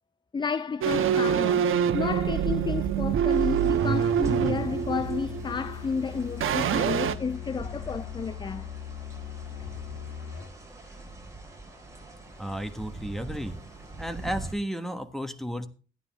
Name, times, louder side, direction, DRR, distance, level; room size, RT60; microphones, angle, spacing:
voice 1, 0.3-8.7, left 5 dB, 20° left, 0.4 m, -31 dB
sound 1, 0.8-6.0 6.4-7.1, right 8 dB, 80° right, 1.1 m, -25 dB
sound 2, 3.3-14.5, right 2 dB, 15° right, 4.8 m, -44 dB
Musical instrument, 4.2-10.6, left 11 dB, 90° left, 1.7 m, -40 dB
voice 2, 12.4-13.6 14.0-15.7, equal, ahead, 1.4 m, -33 dB
14.5 x 9.6 x 3.5 m
cardioid pair, 115°, 21 cm